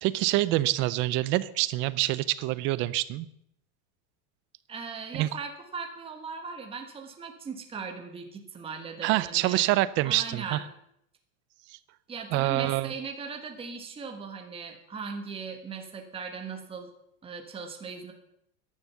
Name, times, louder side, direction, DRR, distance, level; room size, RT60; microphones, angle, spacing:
voice 1, 0.0-3.3 5.1-5.3 9.0-10.6 12.3-12.9, right 17 dB, 30° right, 18 dB, 0.4 m, -26 dB
voice 2, 4.7-9.7 10.0-10.6 12.1-16.9 17.2-18.1, right 5 dB, 15° right, 4 dB, 1.6 m, -38 dB
13.5 x 11.0 x 7.0 m, 0.74 s
supercardioid pair, 165°, 42 cm